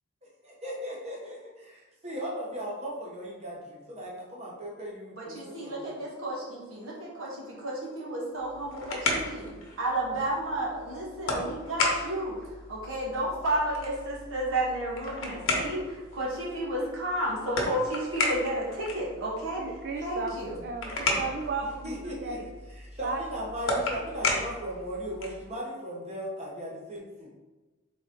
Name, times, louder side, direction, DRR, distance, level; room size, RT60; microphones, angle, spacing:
voice 1, 0.2-1.7 2.0-6.0 17.5-17.6 21.8-27.3, equal, 35° right, -3 dB, 0.9 m, -38 dB
voice 2, 5.2-12.3 12.7-19.6 20.0-20.5, right 1 dB, 85° right, -4 dB, 1.4 m, -32 dB
sound 1, 8.4-25.5, left 2 dB, 85° left, 0.9 m, -34 dB
voice 3, 19.6-20.4 20.6-22.4 23.0-23.2, right 4 dB, 55° right, 2 dB, 0.4 m, -35 dB
4.1 x 3.6 x 3.6 m, 1.2 s
head